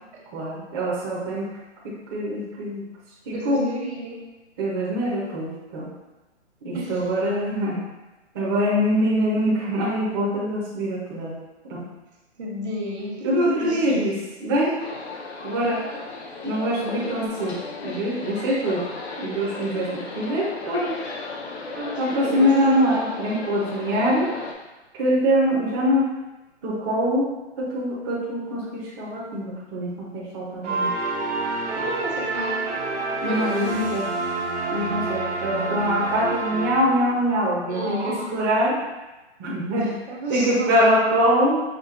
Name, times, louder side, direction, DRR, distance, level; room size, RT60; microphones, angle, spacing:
voice 1, 0.3-1.5 1.8-2.8 3.3-3.6 4.6-5.9 6.6-7.8 8.3-11.3 11.7-11.8 13.2-14.1 14.4-14.7 15.4-15.8 16.4-18.8 19.2-20.9 22.0-24.3 24.9-26.1 26.6-27.2 27.6-30.9 33.2-34.0 34.7-38.8 39.4-39.9 40.3-41.6, equal, 20° right, -6 dB, 0.6 m, -23 dB
voice 2, 3.3-4.2 6.7-7.1 12.4-14.0 21.7-22.5 31.7-32.6 33.2-34.0 37.7-38.4 39.8-41.0, equal, 70° right, -2 dB, 1.2 m, -31 dB
sound 1, 14.8-24.5, left 3 dB, 65° left, 0.8 m, -35 dB
sound 2, 30.6-37.2, right 3 dB, 90° right, 1.1 m, -28 dB
5.8 x 2.2 x 2.4 m, 1.1 s
hypercardioid pair, 150°, 35 cm